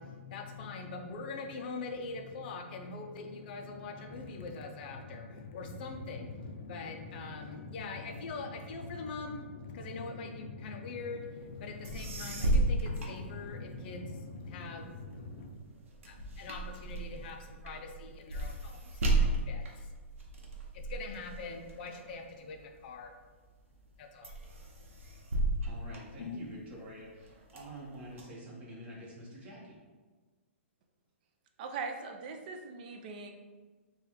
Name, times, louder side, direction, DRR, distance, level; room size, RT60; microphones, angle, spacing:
voice 1, 0.0-15.6 16.1-19.9 20.7-23.1 24.0-24.3 26.2-26.4, left 3 dB, 45° left, 3 dB, 0.5 m, -42 dB
sound 1, 11.6-11.7 11.8-14.0 14.4-23.1 23.6-24.0 24.2-26.7 27.2-28.2, right 2 dB, 75° right, 0.8 m, -34 dB
voice 2, 25.6-29.8, right 1 dB, 20° right, -6 dB, 1.0 m, -47 dB
voice 3, 31.6-33.3, right 4 dB, 40° right, 4 dB, 0.4 m, -40 dB
3.3 x 2.3 x 4.1 m, 1.3 s
hypercardioid pair, 155°, 7 cm